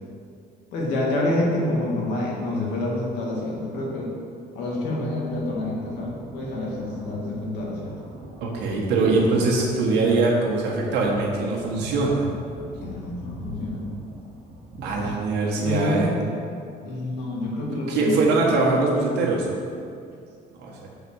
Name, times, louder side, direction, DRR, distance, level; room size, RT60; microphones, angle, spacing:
voice 1, 0.7-4.1 4.5-8.0 12.8-13.8 14.9-15.1 15.5-16.3 16.8-18.2, left 1 dB, 90° left, -3 dB, 1.9 m, -27 dB
sound 1, 5.0-16.0, right 1 dB, 60° right, 1.6 m, -43 dB
voice 2, 8.4-12.3 14.8-16.1 17.9-19.5 20.6-20.8, right 3 dB, 85° right, -3 dB, 1.6 m, -22 dB
6.9 x 4.2 x 6.3 m, 2.4 s
cardioid pair, 110°, 17 cm